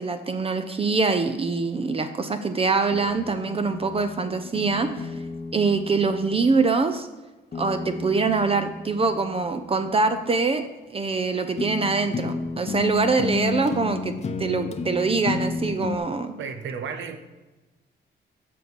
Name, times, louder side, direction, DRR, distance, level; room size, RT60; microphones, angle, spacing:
voice 1, 0.0-5.1 5.5-7.1 7.6-16.3, right 4 dB, 30° right, 0.7 m, -24 dB
sound 1, 2.9-6.7 7.5-10.2 11.0-11.2 11.6-16.0, left 4 dB, 35° left, 0.9 m, -33 dB
voice 2, 16.4-17.2, right 6 dB, 75° right, 1.0 m, -33 dB
7.6 x 5.3 x 6.3 m
cardioid pair, 90°, 20 cm